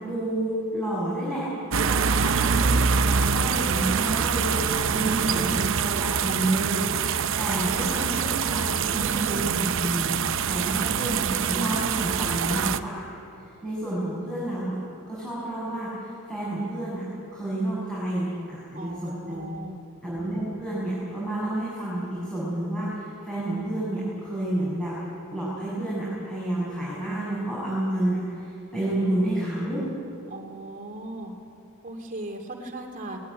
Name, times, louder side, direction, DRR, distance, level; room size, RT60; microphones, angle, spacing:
voice 1, 0.0-4.6 4.9-13.1 13.3-14.8 15.0-17.0 17.3-19.5 20.0-25.0 25.3-29.8, right 1 dB, 5° left, -8 dB, 6.6 m, -30 dB
sound 1, 1.7-12.8, right 6 dB, 60° right, 0.7 m, -25 dB
voice 2, 2.0-2.7 7.4-8.0 18.7-19.7 30.3-31.3 31.8-33.2, right 1 dB, 35° right, 2 dB, 2.8 m, -37 dB
20.0 x 20.0 x 9.6 m, 2.7 s
head